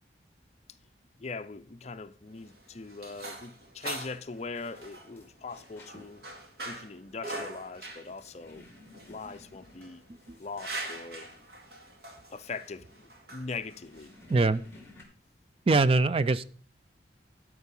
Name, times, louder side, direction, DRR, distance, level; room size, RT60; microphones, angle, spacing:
voice 1, 1.2-6.2 6.6-8.7 9.1-10.0 10.4-11.3 12.3-14.1, left 4 dB, 35° left, 0.5 m, -41 dB
sound 1, 2.3-14.6, right 2 dB, 60° right, 2.3 m, -43 dB
sound 2, 4.5-15.0, left 2 dB, 15° left, 2.3 m, -57 dB
voice 2, 14.3-14.6 15.7-16.4, right 3 dB, 30° right, 0.4 m, -23 dB
12.5 x 4.8 x 5.4 m
head